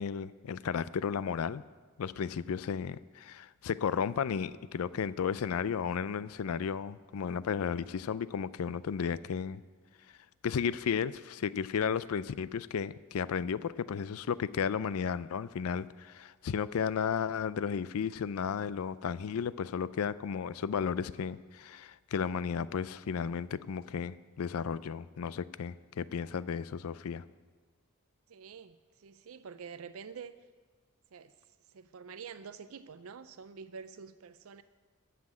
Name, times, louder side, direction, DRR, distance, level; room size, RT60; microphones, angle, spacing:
voice 1, 0.0-1.6 2.0-9.6 10.4-27.2, left 7 dB, 80° left, 17 dB, 0.4 m, -34 dB
voice 2, 28.3-30.3 31.1-31.3 31.7-34.6, right 6 dB, 70° right, 11 dB, 0.5 m, -47 dB
13.5 x 5.8 x 8.8 m, 1.5 s
head